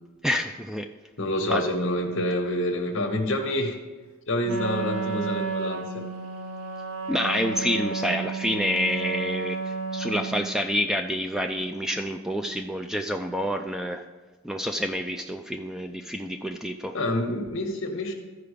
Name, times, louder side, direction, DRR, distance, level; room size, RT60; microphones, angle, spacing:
voice 1, 0.2-0.9 1.5-1.6 7.1-14.0 14.4-17.0, equal, ahead, 5 dB, 0.3 m, -28 dB
voice 2, 1.2-3.8 4.3-6.1 16.9-18.1, left 1 dB, 60° left, 5 dB, 1.2 m, -27 dB
Wind instrument woodwind instrument, 4.4-10.5, right 5 dB, 75° right, 0.9 m, -32 dB
14.0 x 4.7 x 5.1 m, 1.2 s
head